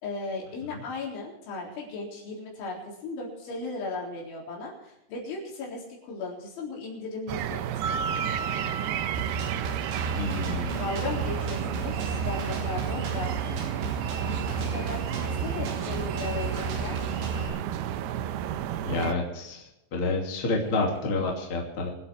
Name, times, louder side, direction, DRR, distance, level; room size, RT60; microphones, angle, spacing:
voice 1, 0.0-7.8 10.8-13.4 14.3-17.0 20.6-21.0, left 3 dB, 75° left, -3 dB, 6.3 m, -36 dB
sound 1, 7.3-19.1, right 10 dB, 85° right, 2.3 m, -32 dB
sound 2, 7.8-10.9, right 3 dB, 45° right, 3.4 m, -36 dB
Drum kit, 9.1-17.5, right 3 dB, 65° right, 4.8 m, -34 dB
voice 2, 10.1-10.9 18.8-19.6 19.9-21.9, left 3 dB, 35° left, -1 dB, 2.8 m, -29 dB
25.0 x 8.6 x 4.6 m, 0.92 s
omnidirectional pair, 5.4 m